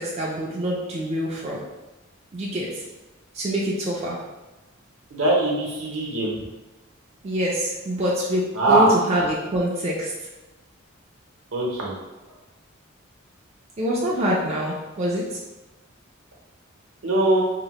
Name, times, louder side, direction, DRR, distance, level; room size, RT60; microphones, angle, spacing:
voice 1, 0.0-1.6 2.3-2.9 3.3-4.2 7.2-10.3 13.8-15.4, equal, 30° right, -5 dB, 0.3 m, -25 dB
voice 2, 5.1-6.3 8.6-8.9 11.5-11.9 17.0-17.4, right 2 dB, 75° right, -3 dB, 0.7 m, -21 dB
2.8 x 2.0 x 2.9 m, 1.1 s
head